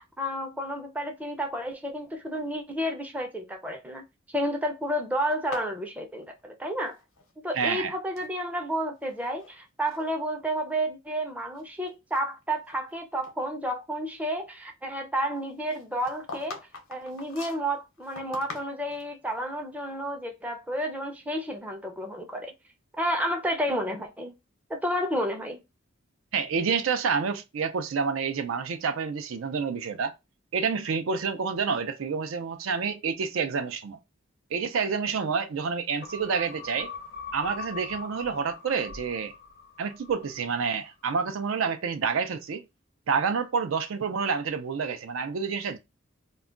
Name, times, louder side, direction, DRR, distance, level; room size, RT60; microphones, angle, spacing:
voice 1, 0.0-4.0 4.3-7.0 7.4-16.6 16.9-22.5 23.0-24.3 24.7-25.6, equal, 10° right, 0.5 m, -31 dB
sound 1, 5.3-7.3 7.6-8.3 9.0-9.5 9.9-10.1 10.7-10.8 11.4-12.9 13.2-13.4 15.7-19.1, left 3 dB, 85° left, 0.8 m, -44 dB
voice 2, 7.6-7.9 26.3-30.1 30.5-34.0 34.5-36.9 37.3-39.3 39.8-42.6 43.1-45.8, right 5 dB, 80° right, 0.4 m, -28 dB
sound 2, 36.0-40.7 41.1-41.2, left 5 dB, 50° left, 0.5 m, -42 dB
2.3 x 2.2 x 3.7 m
head